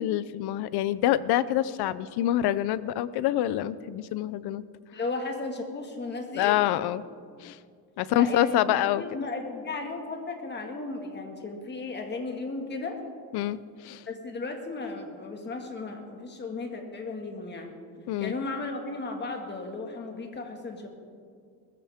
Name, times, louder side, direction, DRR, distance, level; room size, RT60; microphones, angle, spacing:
voice 1, 0.0-4.6 6.3-7.0 7.4-7.6 8.0-9.0 13.3-13.6 13.8-14.0 18.1-18.3, left 13 dB, 85° left, 17 dB, 0.6 m, -26 dB
voice 2, 4.9-6.6 8.1-13.0 14.1-17.7 18.2-20.9, left 3 dB, 30° left, 3 dB, 1.9 m, -35 dB
20.5 x 14.5 x 3.6 m, 2.2 s
cardioid pair, 150°, 38 cm